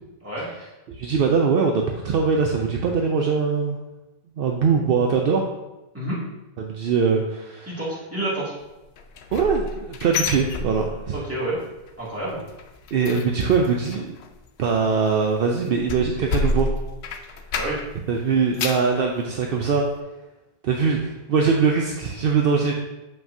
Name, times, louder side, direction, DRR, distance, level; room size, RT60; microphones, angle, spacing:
voice 1, 0.9-3.8 4.4-5.4 6.6-7.7 9.3-11.1 12.9-14.2 14.6-16.7 18.1-19.9 20.6-22.7, right 5 dB, 65° right, 2 dB, 0.8 m, -22 dB
voice 2, 7.7-8.5 11.1-11.6 12.0-12.4 17.5-17.8, right 1 dB, 15° right, -8 dB, 2.2 m, -28 dB
sound 1, 9.0-11.3 11.6-11.9 12.2-18.0 18.3-19.0 19.4-19.5 20.0-20.1, left 3 dB, 80° left, 0.8 m, -30 dB
7.1 x 5.8 x 2.7 m, 1.0 s
omnidirectional pair, 1.1 m